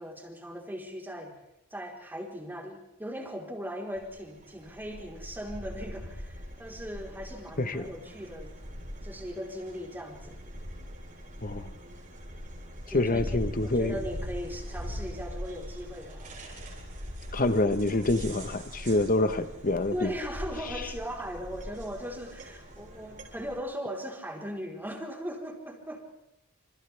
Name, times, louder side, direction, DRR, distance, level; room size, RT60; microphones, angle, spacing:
voice 1, 0.0-1.3 1.7-8.5 9.0-10.4 12.9-16.4 19.9-26.1, equal, 10° right, 0 dB, 4.2 m, -39 dB
sound 1, 3.9-23.6, equal, 40° right, 6.8 m, -42 dB
voice 2, 7.6-7.9 11.4-11.7 12.9-13.9 17.3-20.1, left 2 dB, 40° left, 10 dB, 1.3 m, -26 dB
29.0 x 28.0 x 3.5 m, 0.85 s
head